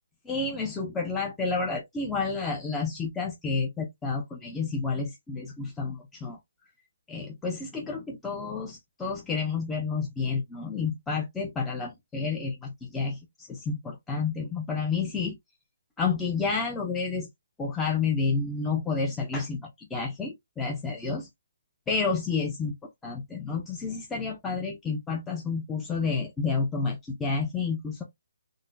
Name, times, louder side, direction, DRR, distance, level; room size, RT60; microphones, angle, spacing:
voice 1, 0.3-6.4 7.1-15.3 16.0-17.3 17.6-21.3 21.9-22.7 23.0-28.0, left 4 dB, 5° left, 0.5 m, -30 dB
3.8 x 2.0 x 2.5 m
hypercardioid pair, 170°, 0 cm